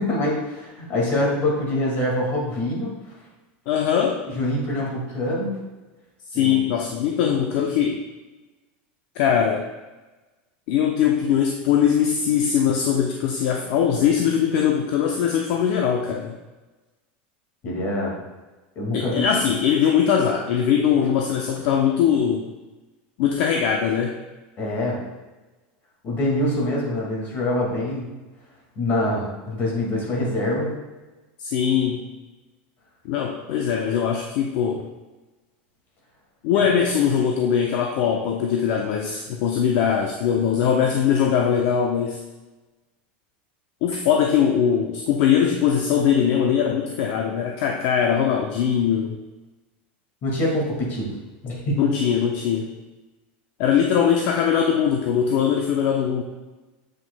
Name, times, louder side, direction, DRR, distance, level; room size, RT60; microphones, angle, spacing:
voice 1, 0.0-2.9 4.3-5.6 6.3-6.6 17.6-18.1 18.8-19.3 24.6-25.0 26.0-28.1 28.8-30.7 50.2-51.1 51.4-51.8, left 1 dB, 35° left, -2 dB, 2.0 m, -25 dB
voice 2, 3.7-4.2 6.3-8.0 9.2-9.7 10.7-16.4 18.9-22.5 23.2-24.2 31.4-32.0 33.0-34.8 36.4-42.2 43.8-49.2 51.8-52.7 53.6-56.2, left 8 dB, 55° left, 2 dB, 0.5 m, -21 dB
7.6 x 5.9 x 2.2 m, 1.2 s
supercardioid pair, 150°, 6 cm